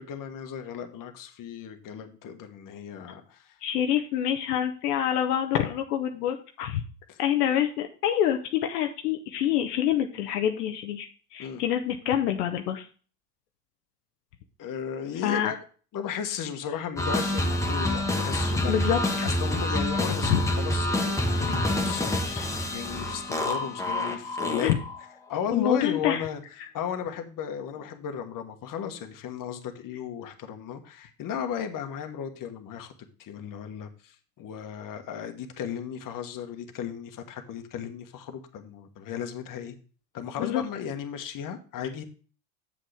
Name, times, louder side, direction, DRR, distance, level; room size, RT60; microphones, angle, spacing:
voice 1, 0.0-3.6 7.1-7.2 11.4-11.6 14.6-15.6 15.9-18.8 19.2-24.7 25.3-26.4 26.7-32.9 33.2-39.7 40.1-42.0, left 8 dB, 45° left, 1.4 m, -35 dB
voice 2, 3.6-6.8 7.2-12.9 15.2-15.5 18.6-19.3 20.3-20.4 24.6-24.8 25.5-26.2 40.4-40.6, left 10 dB, 80° left, 0.9 m, -26 dB
sound 1, 17.0-25.0, left 1 dB, 5° left, 1.2 m, -27 dB
7.7 x 7.5 x 3.4 m
hypercardioid pair, 75°, 46 cm